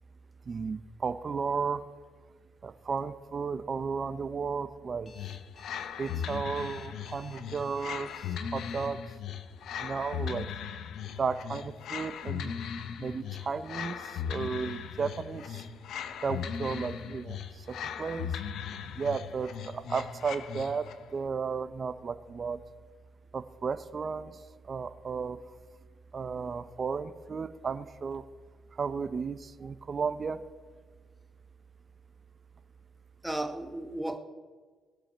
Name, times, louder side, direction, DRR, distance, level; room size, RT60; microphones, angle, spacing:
voice 1, 0.5-1.8 2.6-5.1 6.0-8.1 8.5-9.0 9.8-10.5 11.2-12.5 13.0-15.6 16.2-18.3 19.0-20.9 21.1-22.6 23.3-24.3 24.7-25.4 26.1-28.2 28.8-30.4, right 5 dB, 40° right, 12 dB, 0.7 m, -34 dB
Alarm, 5.0-8.9, left 5 dB, 45° left, 1.7 m, -55 dB
sound 1, 5.1-21.1, left 8 dB, 75° left, 0.8 m, -38 dB
voice 2, 33.2-34.2, right 1 dB, 5° right, 5 dB, 1.4 m, -35 dB
20.5 x 7.7 x 4.4 m, 1.5 s
cardioid pair, 90°, 0 cm